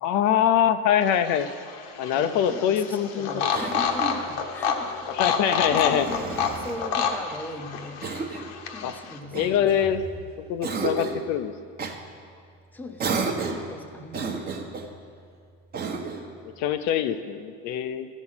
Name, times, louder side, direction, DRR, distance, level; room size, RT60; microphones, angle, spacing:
voice 1, 0.0-1.5 2.0-3.5 5.1-6.1 8.8-8.9 9.3-10.0 10.5-11.5 16.6-18.1, left 9 dB, 55° left, 9 dB, 0.5 m, -24 dB
sound 1, 1.0-9.2, left 6 dB, 75° left, 1.1 m, -29 dB
voice 2, 2.1-5.2 5.7-8.1 8.7-9.9 12.7-14.6, left 2 dB, 5° left, 5 dB, 0.6 m, -39 dB
Cough, 3.5-4.3 5.6-6.8 8.0-8.5 9.3-10.2 10.6-11.2 11.8-12.0 13.0-13.7 14.1-14.9 15.7-16.3, right 4 dB, 30° right, 1.0 m, -32 dB
13.0 x 6.2 x 5.7 m, 2.2 s
supercardioid pair, 120°, 33 cm